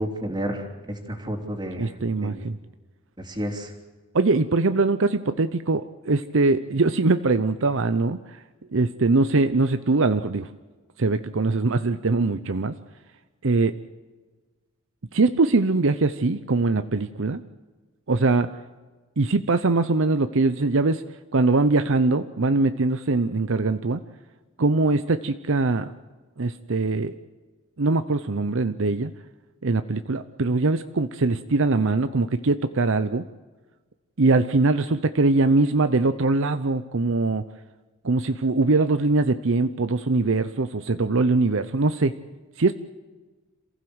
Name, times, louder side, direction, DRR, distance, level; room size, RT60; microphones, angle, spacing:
voice 1, 0.0-2.4 3.2-3.7, equal, 20° right, 4 dB, 3.1 m, -31 dB
voice 2, 1.8-2.6 4.1-8.4 8.7-10.5 11.0-12.8 13.4-13.7 15.1-17.4 18.1-18.5 19.2-21.0 21.3-24.0 24.6-25.9 26.4-27.1 27.8-29.1 29.6-33.3 34.2-37.4 38.0-42.1 42.6-42.7, right 3 dB, 60° right, 11 dB, 0.7 m, -22 dB
27.5 x 15.5 x 8.0 m, 1.3 s
head